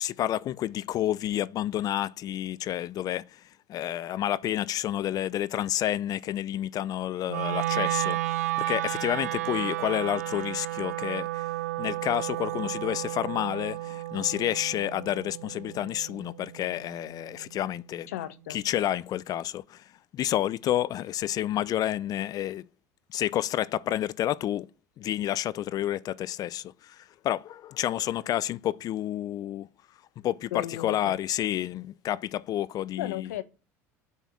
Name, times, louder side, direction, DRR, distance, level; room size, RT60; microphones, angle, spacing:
voice 1, 0.0-3.4 3.7-11.5 11.8-18.1 18.5-19.8 20.1-22.6 23.1-24.7 25.0-29.7 30.2-33.3, left 12 dB, 50° left, 0.6 m, -30 dB
Wind instrument woodwind instrument, 7.3-17.4, right 16 dB, 85° right, 0.9 m, -33 dB
voice 2, 18.1-18.6 30.5-31.2 33.0-33.4, left 13 dB, 75° left, 1.2 m, -35 dB
8.3 x 7.1 x 8.5 m
hypercardioid pair, 70°, 8 cm